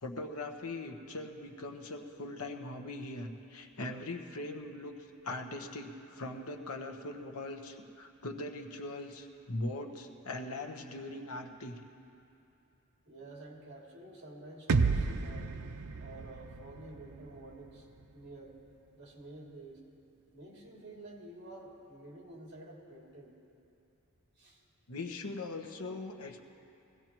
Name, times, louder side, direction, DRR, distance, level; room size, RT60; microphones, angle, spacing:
voice 1, 0.0-4.9 5.2-11.8 24.9-26.4, left 2 dB, 80° left, 4 dB, 1.1 m, -41 dB
voice 2, 13.0-15.5 16.0-17.9 18.1-18.6 18.9-19.8 20.3-23.4 24.4-24.6, right 2 dB, 50° right, -3 dB, 2.9 m, -50 dB
sound 1, 14.7-18.6, right 4 dB, 90° right, 0.6 m, -33 dB
22.5 x 16.0 x 3.0 m, 2.8 s
head